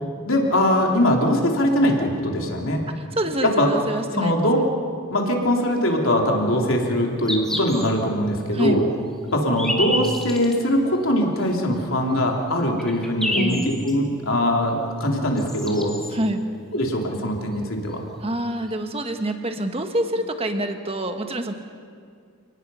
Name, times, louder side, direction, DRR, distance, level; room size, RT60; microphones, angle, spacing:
voice 1, 0.3-2.8 3.4-3.7 4.2-4.6 5.1-8.8 9.3-13.6 13.8-16.0 16.7-18.0, left 1 dB, 65° left, 1 dB, 3.3 m, -21 dB
voice 2, 2.9-4.5 8.5-8.8 13.4-13.7 16.1-16.4 18.2-21.5, right 1 dB, 25° right, 6 dB, 1.5 m, -26 dB
sound 1, 5.8-6.0 6.8-6.9 7.2-7.9 8.4-8.5 9.3-10.6 11.4-11.5 12.2-12.3 12.6-13.9 15.1-15.2 15.4-16.1 17.5-17.6 17.9-18.0 18.6-18.7, left 1 dB, ahead, 2.2 m, -29 dB
29.5 x 19.5 x 5.7 m, 2.2 s
head